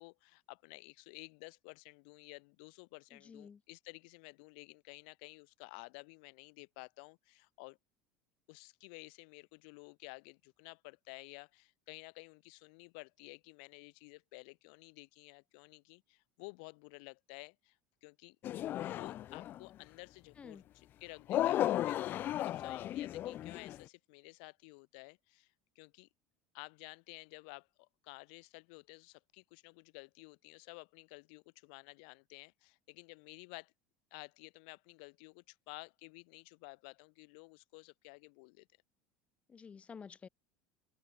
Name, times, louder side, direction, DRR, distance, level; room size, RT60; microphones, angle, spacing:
voice 1, 0.0-7.8 8.5-18.4 18.9-26.1 26.5-33.7 34.1-38.7, left 33 dB, 75° left, 3.5 m, -53 dB
voice 2, 3.2-3.6 20.4-20.6 39.5-40.3, left 6 dB, 25° left, 1.4 m, -50 dB
sound 1, 18.4-19.7 21.3-23.8, left 13 dB, 45° left, 0.3 m, -35 dB
open air
supercardioid pair, 110°, 5 cm